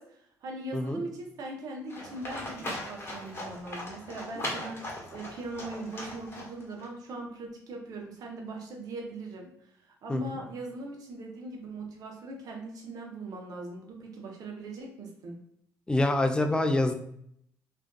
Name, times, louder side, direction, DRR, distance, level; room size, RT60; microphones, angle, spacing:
voice 1, 0.0-9.5 9.8-15.4, right 2 dB, 65° right, 0 dB, 0.7 m, -40 dB
Livestock farm animals working animals, 1.9-6.8, left 1 dB, 35° left, 1.0 m, -39 dB
voice 2, 15.9-16.9, left 2 dB, 10° left, 6 dB, 0.3 m, -26 dB
2.5 x 2.3 x 2.3 m, 0.70 s
supercardioid pair, 70°, 7 cm